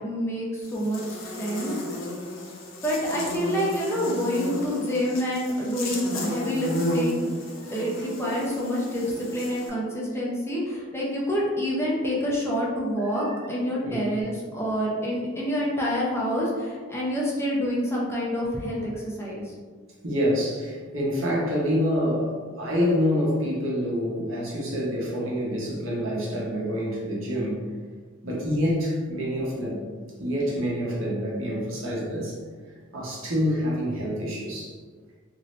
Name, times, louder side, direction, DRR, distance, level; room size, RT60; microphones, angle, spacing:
voice 1, 0.0-1.7 2.8-7.3 7.7-19.5, equal, 15° left, -5 dB, 0.6 m, -27 dB
Buzz, 0.6-9.7, left 1 dB, 70° left, 0.6 m, -33 dB
voice 2, 20.0-27.6 28.2-29.8 30.2-32.4 32.9-34.8, equal, 80° right, -5 dB, 1.0 m, -27 dB
2.7 x 2.6 x 3.1 m, 1.5 s
head